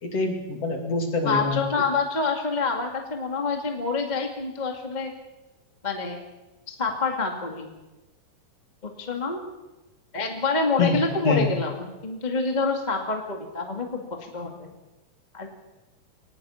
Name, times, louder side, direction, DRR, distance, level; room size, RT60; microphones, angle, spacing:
voice 1, 0.0-1.6 10.8-11.0 11.2-11.6, left 3 dB, 40° left, 3 dB, 3.3 m, -25 dB
voice 2, 1.2-5.1 5.8-6.2 6.7-7.7 8.8-9.4 10.1-14.7 15.3-15.5, left 4 dB, 20° left, 3 dB, 1.3 m, -27 dB
24.0 x 19.5 x 5.8 m, 1.1 s
omnidirectional pair, 4.6 m